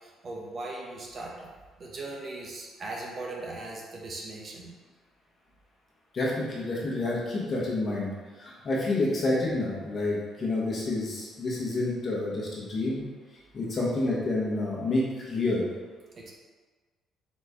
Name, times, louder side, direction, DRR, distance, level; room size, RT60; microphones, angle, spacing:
voice 1, 0.0-1.5 1.8-4.7 16.2-16.3, right 2 dB, 40° right, -2 dB, 0.8 m, -39 dB
voice 2, 6.1-8.1 8.4-13.1 13.5-15.6, left 2 dB, 40° left, -5 dB, 1.2 m, -29 dB
4.1 x 3.0 x 3.6 m, 1.4 s
cardioid pair, 110°, 0 cm